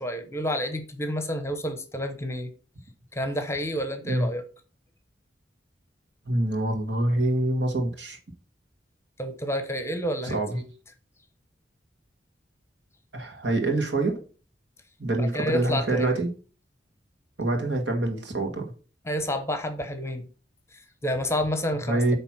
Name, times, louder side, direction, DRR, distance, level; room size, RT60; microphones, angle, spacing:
voice 1, 0.0-2.5 3.1-4.4 9.2-10.6 15.2-16.2 19.0-20.2 20.7-22.2, equal, 15° left, 1.0 m, -29 dB
voice 2, 6.3-8.2 10.2-10.5 13.1-14.2 15.0-16.3 17.4-18.7 21.9-22.2, right 2 dB, 75° right, 1.9 m, -25 dB
9.0 x 3.4 x 6.0 m
head